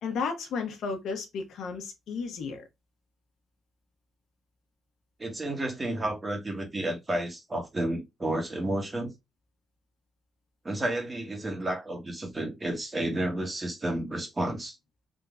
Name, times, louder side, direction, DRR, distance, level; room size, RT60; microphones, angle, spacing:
voice 1, 0.0-2.6, left 5 dB, 70° left, 1.2 m, -33 dB
voice 2, 5.2-9.1 10.6-14.8, right 1 dB, 20° right, 1.2 m, -31 dB
3.7 x 2.8 x 3.5 m
cardioid pair, 160°, 0 cm